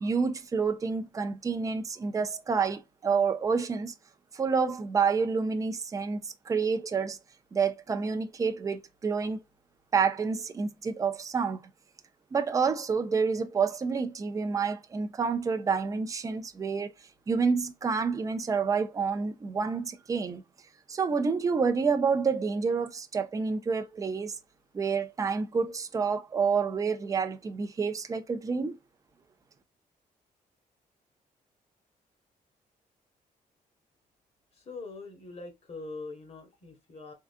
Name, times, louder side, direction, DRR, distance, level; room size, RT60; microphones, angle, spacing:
voice 1, 0.0-3.9 4.3-7.2 7.5-9.4 9.9-11.6 12.3-16.9 17.3-20.4 20.9-24.4 24.7-28.8, right 5 dB, 25° right, 0.4 m, -28 dB
voice 2, 34.5-37.1, left 3 dB, 45° left, 1.0 m, -43 dB
3.7 x 2.3 x 2.5 m
cardioid pair, 130°, 15 cm